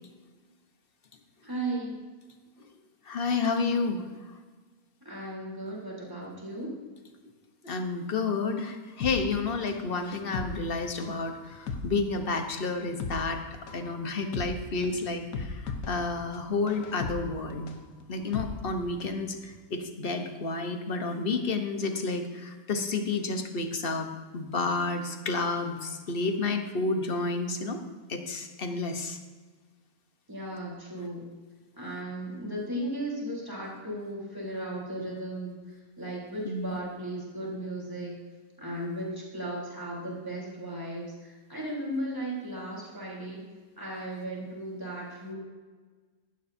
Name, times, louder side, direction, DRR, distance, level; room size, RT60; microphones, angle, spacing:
voice 1, 1.4-2.0 5.0-6.8 30.3-31.2 31.8-35.5 36.0-38.1 38.6-43.4 43.8-45.3, right 1 dB, 15° right, -4 dB, 3.6 m, -36 dB
voice 2, 3.1-4.0 7.6-13.4 13.7-17.7 18.1-27.8 28.1-29.2 36.4-36.8, left 3 dB, 40° left, 5 dB, 1.2 m, -30 dB
sound 1, 9.0-19.2 19.5-19.6, left 4 dB, 75° left, 1.4 m, -38 dB
15.5 x 11.5 x 2.8 m, 1.4 s
omnidirectional pair, 1.5 m